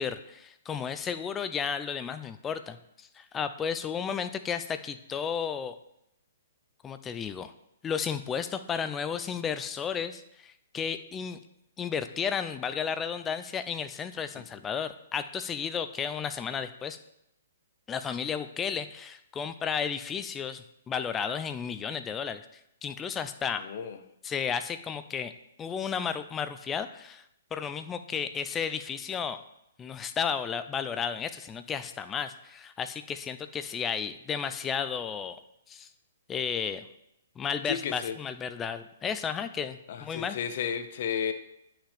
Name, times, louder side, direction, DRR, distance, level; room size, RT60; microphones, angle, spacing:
voice 1, 0.0-5.8 6.8-7.5 7.8-11.4 11.8-17.0 17.9-22.4 22.8-23.6 24.2-25.3 25.6-27.2 27.5-29.4 29.8-35.4 35.7-35.9 36.3-36.9 37.4-40.4, left 7 dB, 15° left, 11 dB, 0.5 m, -33 dB
voice 2, 23.6-24.0 37.6-38.2 39.9-41.3, left 8 dB, 55° left, 9 dB, 0.7 m, -33 dB
9.8 x 5.8 x 3.5 m, 0.81 s
hypercardioid pair, 130°, 0 cm